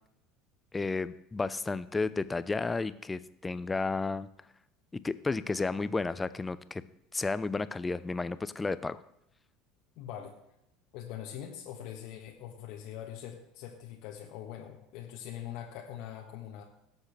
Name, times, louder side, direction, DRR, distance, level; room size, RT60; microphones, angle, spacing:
voice 1, 0.7-4.3 4.9-6.8 7.1-9.0, left 3 dB, 20° left, 15 dB, 0.6 m, -32 dB
voice 2, 10.0-10.3 10.9-16.6, left 10 dB, 60° left, 0 dB, 1.4 m, -43 dB
18.0 x 7.5 x 3.3 m, 0.79 s
hypercardioid pair, 70°, 0 cm